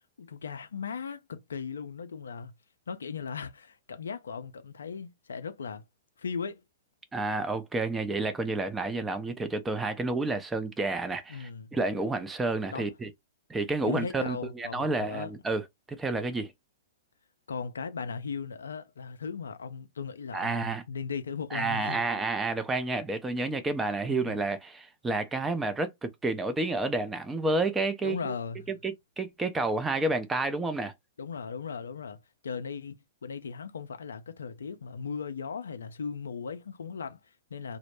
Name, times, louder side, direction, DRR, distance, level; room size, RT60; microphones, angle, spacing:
voice 1, 0.2-2.5 2.9-5.8 6.2-6.6 11.3-11.7 12.7-12.9 13.8-15.3 17.5-22.2 24.1-24.4 28.0-28.7 31.2-37.8, left 6 dB, 80° left, 0.3 m, -37 dB
voice 2, 7.1-13.1 13.5-15.6 16.0-16.5 20.3-20.8 21.5-28.3 28.7-30.9, right 2 dB, 10° right, 0.5 m, -30 dB
2.0 x 2.0 x 3.0 m
hypercardioid pair, 115°, 0 cm